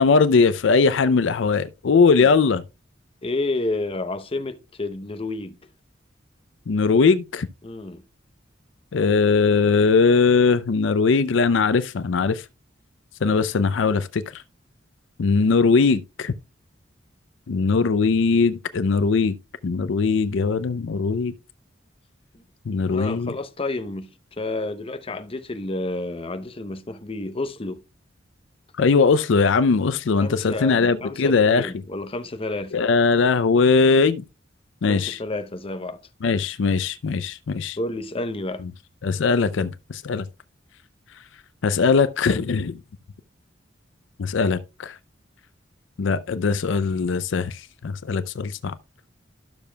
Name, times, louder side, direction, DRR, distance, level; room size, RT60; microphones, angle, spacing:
voice 1, 0.0-2.6 6.7-7.5 8.9-12.4 13.2-14.2 15.2-16.3 17.5-19.3 19.6-21.3 22.7-23.3 28.8-31.7 32.7-34.2 34.8-35.2 36.2-37.8 39.0-40.2 41.6-42.7 44.2-45.0 46.0-48.7, left 4 dB, 70° left, 0.5 m, -20 dB
voice 2, 3.2-5.6 7.6-8.0 22.3-22.4 22.9-27.8 30.2-32.8 34.9-36.0 37.8-38.6, left 2 dB, 30° left, 0.7 m, -30 dB
12.5 x 6.7 x 2.2 m
head